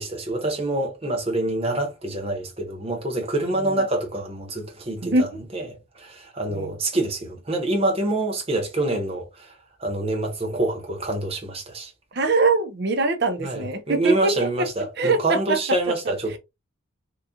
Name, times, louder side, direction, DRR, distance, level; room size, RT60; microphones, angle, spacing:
voice 1, 0.0-5.7 5.9-9.5 9.8-11.9 13.4-16.4, right 2 dB, 25° right, 0.9 m, -26 dB
voice 2, 12.1-14.3 15.0-15.6, right 3 dB, 50° right, 0.7 m, -22 dB
3.6 x 2.3 x 2.7 m
head